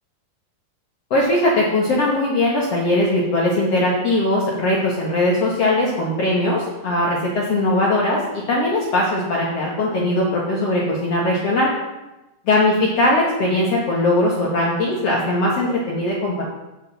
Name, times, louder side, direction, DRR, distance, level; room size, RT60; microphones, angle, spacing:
voice 1, 1.1-11.7 12.5-16.4, left 1 dB, 55° left, -5 dB, 2.3 m, -20 dB
16.0 x 5.5 x 4.2 m, 1.0 s
omnidirectional pair, 3.9 m